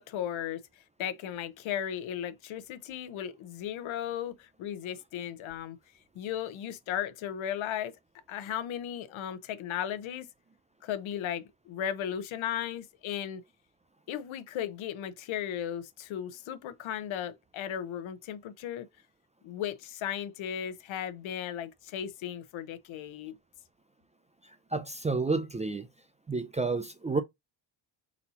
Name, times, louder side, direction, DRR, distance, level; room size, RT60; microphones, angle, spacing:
voice 1, 0.0-5.8 6.1-7.9 8.3-10.3 10.8-13.4 14.1-18.9 19.4-23.4, left 10 dB, 75° left, 0.8 m, -36 dB
voice 2, 24.7-25.9 26.3-27.2, right 3 dB, 15° right, 0.3 m, -30 dB
4.2 x 2.8 x 4.1 m
cardioid pair, 115°, 47 cm